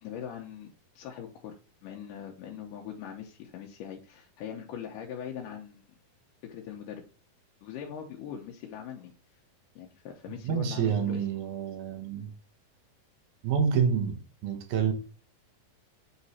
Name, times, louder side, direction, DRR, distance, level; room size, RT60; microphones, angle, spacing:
voice 1, 0.0-5.8 6.4-7.1 7.6-9.1 9.8-11.3, left 8 dB, 80° left, 2.2 m, -41 dB
voice 2, 10.4-12.3 13.4-14.9, right 7 dB, 70° right, 2.1 m, -28 dB
8.2 x 3.0 x 4.1 m
omnidirectional pair, 4.0 m